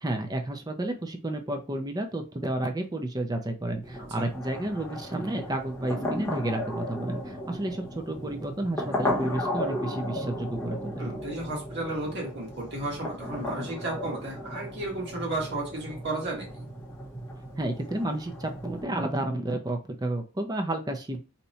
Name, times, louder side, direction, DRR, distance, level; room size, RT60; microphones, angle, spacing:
voice 1, 0.0-11.1 17.6-21.2, right 1 dB, 20° right, 5 dB, 0.5 m, -31 dB
sound 1, 3.8-18.8, left 1 dB, 10° left, 0.9 m, -35 dB
voice 2, 11.0-16.7, right 2 dB, 55° right, -2 dB, 1.4 m, -34 dB
2.8 x 2.2 x 4.0 m, 0.32 s
head